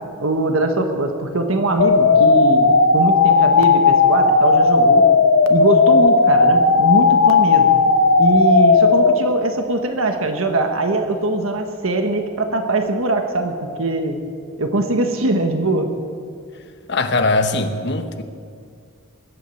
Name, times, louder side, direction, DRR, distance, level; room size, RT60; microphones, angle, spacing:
voice 1, 0.2-5.1 5.5-7.7 8.2-14.2 14.6-15.9, right 2 dB, 80° right, 5 dB, 1.4 m, -21 dB
sound 1, 1.8-9.1, left 4 dB, 85° left, 1.1 m, -14 dB
voice 2, 16.9-18.2, left 2 dB, 55° left, 7 dB, 1.1 m, -20 dB
21.0 x 8.5 x 7.9 m, 2.2 s
head